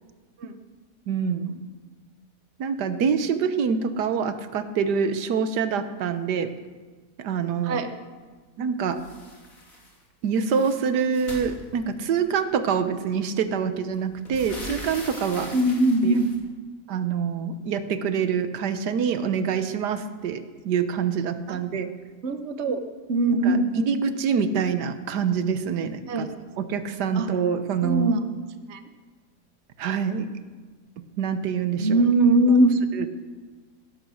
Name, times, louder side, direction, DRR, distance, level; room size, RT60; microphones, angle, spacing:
voice 1, 1.1-1.5 2.6-6.5 7.2-7.8 8.6-9.0 10.2-15.5 16.0-16.2 16.9-21.9 23.4-26.3 26.6-28.1 29.8-30.3 31.2-32.0 32.9-33.1, right 6 dB, 90° right, 10 dB, 1.6 m, -26 dB
sound 1, 8.9-10.0 10.2-12.2 13.2-13.3 13.6-16.4, left 1 dB, 55° left, 3.3 m, -42 dB
voice 2, 15.5-16.3 21.5-21.6 22.2-22.8 23.1-23.7 26.1-26.3 27.1-27.3 27.8-28.2 28.7-28.8 31.8-32.8, right 1 dB, 50° right, 8 dB, 1.2 m, -21 dB
17.0 x 11.5 x 6.3 m, 1.4 s
omnidirectional pair, 1.7 m